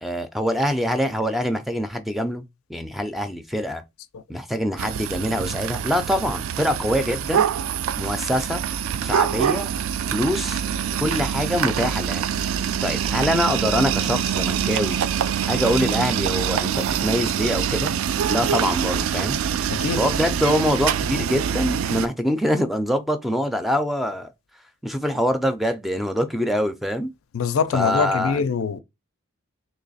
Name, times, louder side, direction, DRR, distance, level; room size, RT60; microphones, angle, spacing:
voice 1, 0.0-2.4 2.7-3.8 4.3-7.5 8.0-8.6 9.0-9.7 10.1-10.6 11.0-12.2 12.5-15.0 15.5-17.9 18.3-19.4 19.6-24.3 24.8-27.1 27.7-28.5, equal, ahead, 0.4 m, -24 dB
sound 1, 4.8-22.1, right 8 dB, 75° right, 0.3 m, -25 dB
voice 2, 19.7-20.0 27.3-28.8, left 5 dB, 80° left, 0.4 m, -23 dB
3.1 x 2.9 x 4.0 m
head